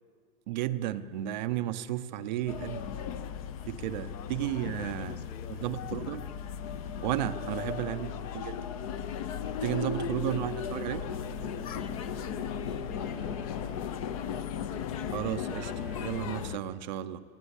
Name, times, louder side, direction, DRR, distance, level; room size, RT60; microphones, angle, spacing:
voice 1, 0.5-2.8 3.7-5.2 5.6-6.3 7.0-8.6 9.6-11.1 15.1-15.7 16.0-17.2, right 13 dB, 30° right, 10 dB, 0.6 m, -33 dB
sound 1, 2.5-16.6, left 7 dB, 25° left, 0.6 m, -36 dB
voice 2, 4.1-5.6 7.3-8.6 9.3-12.7 13.0-14.2, left 6 dB, 75° left, 1 dB, 4.0 m, -49 dB
sound 2, 11.0-16.2, right 4 dB, ahead, 1.0 m, -53 dB
28.0 x 18.0 x 9.8 m, 2.3 s
hypercardioid pair, 155°, 48 cm